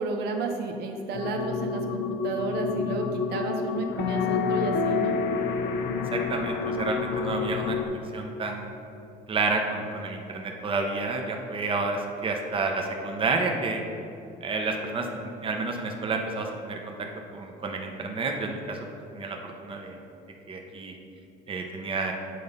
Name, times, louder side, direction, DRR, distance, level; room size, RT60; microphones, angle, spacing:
voice 1, 0.0-5.2, right 3 dB, 75° right, 3 dB, 0.8 m, -32 dB
sound 1, 1.1-7.9, left 5 dB, 80° left, 0.5 m, -28 dB
voice 2, 6.1-8.7 9.3-13.8 14.4-15.1 15.4-17.1 17.3-18.8 19.1-20.0 20.5-20.9 21.5-22.1, right 3 dB, 30° right, 2 dB, 0.8 m, -30 dB
7.7 x 4.0 x 5.3 m, 2.7 s
cardioid pair, 110°, 17 cm